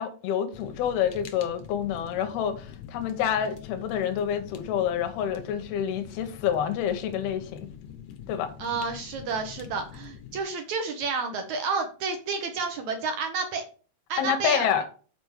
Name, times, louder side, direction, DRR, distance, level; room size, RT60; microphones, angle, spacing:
voice 1, 0.0-7.7 8.3-8.5 14.2-14.8, left 9 dB, 85° left, 2.9 m, -28 dB
Fire, 0.5-10.4, left 9 dB, 70° left, 1.7 m, -45 dB
voice 2, 8.6-13.6 14.1-14.8, right 4 dB, 65° right, 1.9 m, -30 dB
6.9 x 5.2 x 6.4 m
omnidirectional pair, 4.3 m